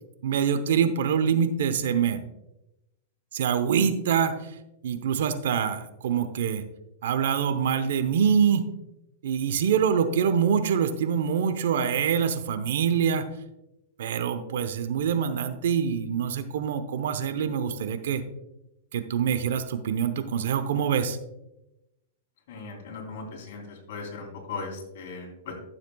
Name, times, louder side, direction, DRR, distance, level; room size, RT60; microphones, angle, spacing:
voice 1, 0.2-2.2 3.3-4.4 4.8-6.6 7.0-8.7 9.2-13.3 14.0-18.2 18.9-21.2, right 7 dB, 75° right, 10 dB, 0.7 m, -25 dB
voice 2, 22.5-23.6 23.9-25.5, left 4 dB, 60° left, 0 dB, 3.1 m, -38 dB
12.5 x 7.3 x 2.3 m, 0.92 s
hypercardioid pair, 145°, 0 cm